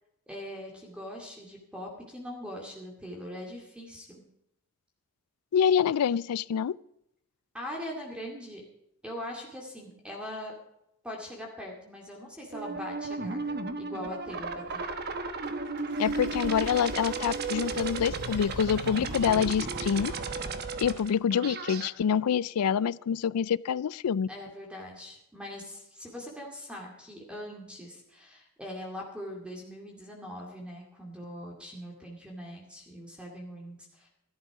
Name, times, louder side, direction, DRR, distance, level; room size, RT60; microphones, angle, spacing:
voice 1, 0.3-4.2 7.5-8.6 9.0-10.5 11.0-14.9 24.3-34.1, equal, 5° right, 2.2 m, -41 dB
voice 2, 5.5-6.8 16.0-20.1 20.8-24.3, left 7 dB, 90° left, 0.4 m, -26 dB
sound 1, 12.5-21.9, right 3 dB, 45° right, 1.1 m, -34 dB
sound 2, 15.4-20.5, right 3 dB, 90° right, 3.1 m, -51 dB
13.5 x 12.0 x 5.0 m
head